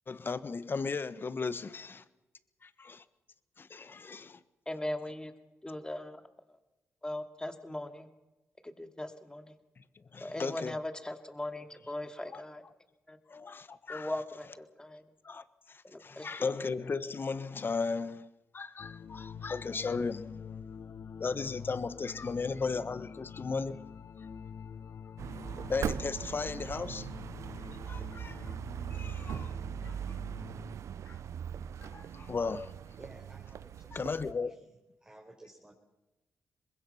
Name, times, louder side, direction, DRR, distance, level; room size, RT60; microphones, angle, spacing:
voice 1, 0.1-2.0 2.6-3.0 3.6-4.4 9.8-9.9 10.1-10.8 12.3-12.4 13.3-14.1 15.2-20.3 21.2-23.8 24.2-24.3 25.7-27.1 27.8-28.5 28.9-29.5 29.8-30.2 31.1-31.2 31.8-32.7 33.9-34.5, left 4 dB, 45° left, 1.4 m, -36 dB
voice 2, 4.7-5.3 5.6-6.2 7.0-8.1 8.6-9.5 10.2-12.6 13.1-13.2 13.9-15.0 15.8-16.2, left 1 dB, 15° left, 2.6 m, -39 dB
sound 1, 18.8-30.8, left 6 dB, 65° left, 1.1 m, -47 dB
sound 2, 25.2-34.3, right 9 dB, 70° right, 0.7 m, -40 dB
voice 3, 33.0-34.0 34.3-34.7 35.0-35.7, right 1 dB, 15° right, 4.6 m, -55 dB
23.5 x 21.0 x 5.9 m
cardioid pair, 60°, 5 cm